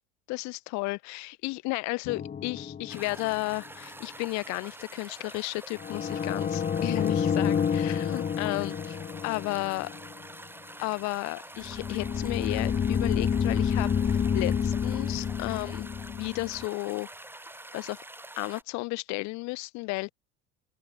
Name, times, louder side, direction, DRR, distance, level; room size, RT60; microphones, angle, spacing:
voice 1, 0.3-9.0 9.2-9.9 10.8-17.1 17.7-18.0 18.4-20.1, left 25 dB, 50° left, 0.8 m, -33 dB
sound 1, 2.1-3.5 5.8-10.2 11.6-16.6, left 7 dB, 20° left, 1.0 m, -29 dB
sound 2, 2.9-18.6, right 1 dB, 5° right, 6.4 m, -46 dB
open air
figure-of-eight pair, 70°, 36 cm